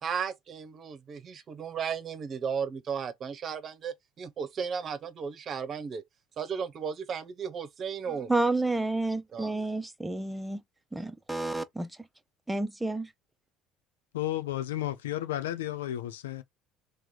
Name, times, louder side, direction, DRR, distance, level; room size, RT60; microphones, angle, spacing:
voice 1, 0.0-6.0 6.4-8.3 9.3-9.5, right 6 dB, 45° right, 0.9 m, -35 dB
voice 2, 8.3-10.6 10.9-11.9 12.5-13.1, right 2 dB, 10° right, 0.8 m, -30 dB
voice 3, 14.1-16.4, left 13 dB, 90° left, 0.5 m, -32 dB
3.1 x 3.1 x 3.8 m
hypercardioid pair, 80°, 0 cm